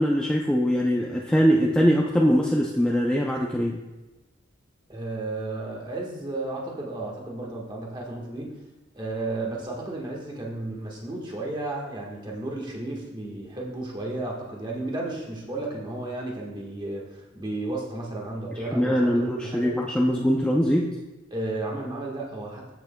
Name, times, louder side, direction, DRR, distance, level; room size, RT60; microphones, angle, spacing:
voice 1, 0.0-3.8 18.7-20.9, equal, 5° left, -2 dB, 0.4 m, -22 dB
voice 2, 4.9-8.5 8.9-19.7 21.3-22.7, right 2 dB, 25° right, -2 dB, 1.3 m, -33 dB
13.5 x 5.8 x 2.2 m, 1.1 s
head